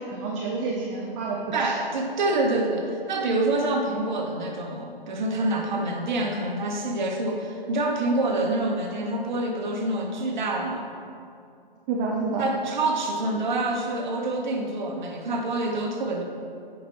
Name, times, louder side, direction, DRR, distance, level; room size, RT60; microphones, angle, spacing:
voice 1, 0.0-1.7 5.8-5.9 8.2-8.3 11.9-12.4, right 4 dB, 15° right, -3 dB, 0.5 m, -29 dB
voice 2, 1.5-10.9 12.4-16.2, right 2 dB, 50° right, 1 dB, 1.3 m, -26 dB
9.2 x 5.4 x 4.2 m, 2.5 s
figure-of-eight pair, 130°, 29 cm